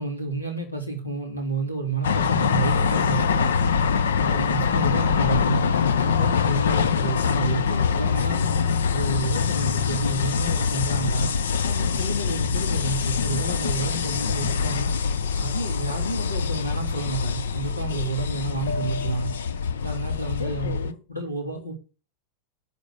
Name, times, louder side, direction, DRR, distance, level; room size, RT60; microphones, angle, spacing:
voice 1, 0.0-3.5 4.2-5.7 6.0-8.5 8.9-11.3 11.6-14.9 15.4-19.3 19.8-21.7, right 3 dB, 85° left, 3.4 m, -30 dB
sound 1, 2.0-20.9, left 6 dB, 65° left, 0.7 m, -24 dB
11.5 x 5.3 x 7.0 m
figure-of-eight pair, 90°, 0 cm